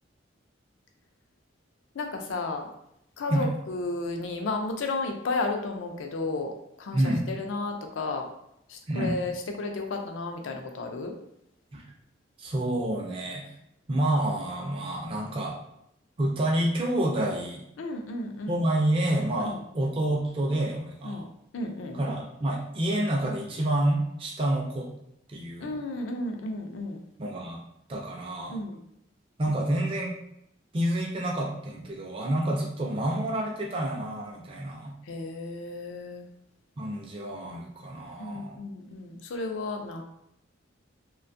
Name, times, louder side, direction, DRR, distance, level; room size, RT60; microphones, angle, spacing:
voice 1, 1.9-2.7 3.2-8.3 8.7-11.1 17.8-18.6 19.4-19.6 21.0-21.3 21.5-22.0 25.6-27.0 28.5-28.8 32.4-32.6 35.0-36.3 38.2-40.0, left 3 dB, 80° left, 4 dB, 0.4 m, -33 dB
voice 2, 6.9-7.3 8.9-9.1 11.7-11.9 12.4-13.5 13.9-15.6 16.2-17.6 18.5-21.2 21.9-24.9 25.3-25.8 27.2-27.6 27.9-28.6 29.4-30.1 30.7-34.9 36.8-38.6, right 1 dB, 30° right, -1 dB, 0.3 m, -28 dB
2.5 x 2.2 x 2.5 m, 0.77 s
head